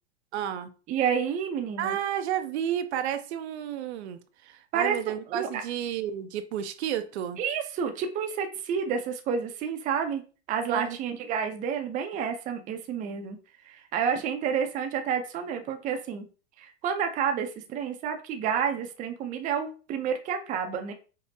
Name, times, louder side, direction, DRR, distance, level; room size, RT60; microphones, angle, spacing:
voice 1, 0.3-0.7 1.8-7.4 10.7-11.0, right 10 dB, 75° right, 10 dB, 0.6 m, -32 dB
voice 2, 0.9-2.0 4.7-5.5 7.4-10.2 10.5-13.4 13.6-16.3 16.6-20.9, right 7 dB, 25° right, 5 dB, 0.5 m, -29 dB
5.2 x 2.0 x 2.6 m, 0.35 s
hypercardioid pair, 125°, 33 cm